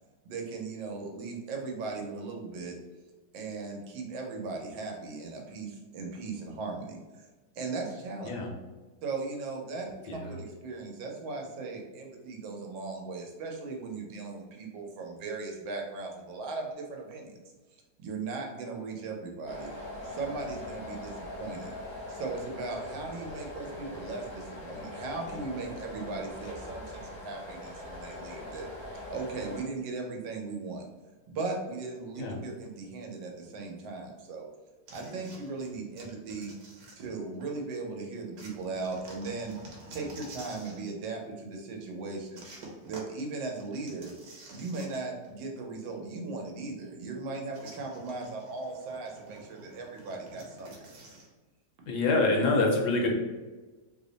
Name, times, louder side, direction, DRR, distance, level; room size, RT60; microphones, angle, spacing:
voice 1, 0.2-2.7 3.3-7.3 7.5-8.3 9.0-17.4 18.0-19.7 20.0-21.7 22.1-28.7 29.1-30.9 31.3-34.5 34.9-36.5 37.0-39.6 39.9-42.4 42.9-44.1 44.5-50.9, right 3 dB, 85° right, 1 dB, 1.4 m, -38 dB
sound 1, 19.5-29.6, left 1 dB, 45° left, 0.5 m, -42 dB
sound 2, 34.9-37.6 38.4-40.9 42.4-45.3 45.6-45.7 47.5-51.3, right 2 dB, 70° right, 1.3 m, -49 dB
voice 2, 51.9-53.1, left 2 dB, 70° left, 1 dB, 1.1 m, -26 dB
3.3 x 2.1 x 3.8 m, 1.2 s
omnidirectional pair, 2.0 m